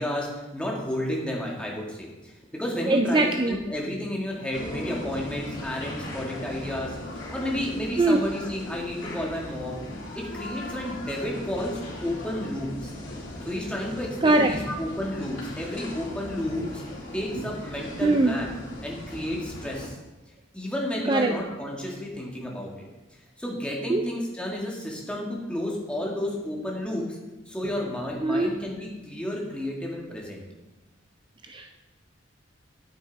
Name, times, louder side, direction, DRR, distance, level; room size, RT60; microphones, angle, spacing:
voice 1, 0.0-7.0 7.3-9.8 10.1-12.9 13.5-16.8 17.1-20.0 20.5-22.7 23.4-27.2 27.5-30.4, left 1 dB, 5° left, -2 dB, 1.9 m, -31 dB
voice 2, 2.9-3.5 8.0-8.2 14.2-14.5 18.0-18.4 21.0-21.4 23.9-24.0 28.2-28.5 31.4-31.7, right 2 dB, 25° right, 5 dB, 0.4 m, -22 dB
sound 1, 4.5-19.9, left 1 dB, 75° left, 3.0 m, -38 dB
9.6 x 9.2 x 4.1 m, 1.1 s
head